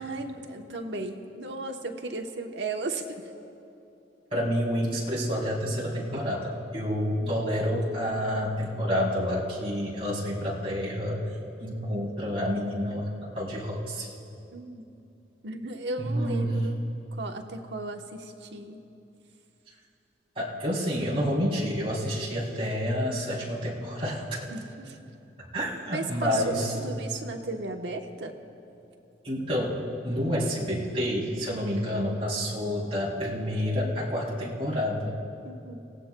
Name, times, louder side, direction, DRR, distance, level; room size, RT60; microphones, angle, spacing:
voice 1, 0.0-3.2 7.2-7.3 14.5-14.8 15.4-16.8 17.1-18.8 24.5-25.0 25.9-26.5 26.8-28.3 35.4-35.8, right 2 dB, 80° right, 3 dB, 1.1 m, -35 dB
voice 2, 4.3-11.3 11.6-14.1 16.0-16.6 20.3-24.4 25.5-26.7 29.2-29.8 30.0-35.2, equal, 35° right, -6 dB, 3.3 m, -29 dB
29.0 x 16.5 x 2.3 m, 2.8 s
head